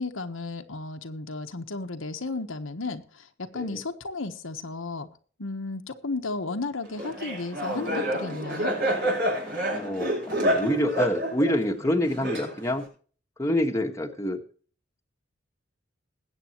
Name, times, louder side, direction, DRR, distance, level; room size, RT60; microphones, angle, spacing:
voice 1, 0.0-3.3 3.5-5.1 5.4-8.7, left 3 dB, 85° left, 5 dB, 1.2 m, -33 dB
Laughter, 7.0-12.9, right 1 dB, 55° right, 6.6 m, -28 dB
voice 2, 9.7-12.9 13.4-14.4, left 1 dB, 15° left, 3 dB, 1.3 m, -27 dB
21.0 x 8.2 x 3.0 m, 0.42 s
head